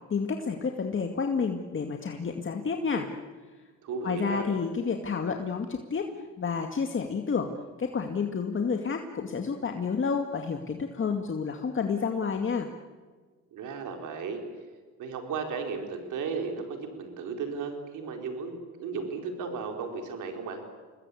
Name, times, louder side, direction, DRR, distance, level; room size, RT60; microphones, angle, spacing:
voice 1, 0.1-3.1 4.0-6.1 6.4-7.5 7.8-12.7, left 5 dB, 40° left, 4 dB, 2.1 m, -30 dB
voice 2, 3.8-4.5 13.5-14.4 15.0-20.6, right 5 dB, 85° right, 4 dB, 4.6 m, -35 dB
28.5 x 21.0 x 8.6 m, 1.4 s
cardioid pair, 90°, 30 cm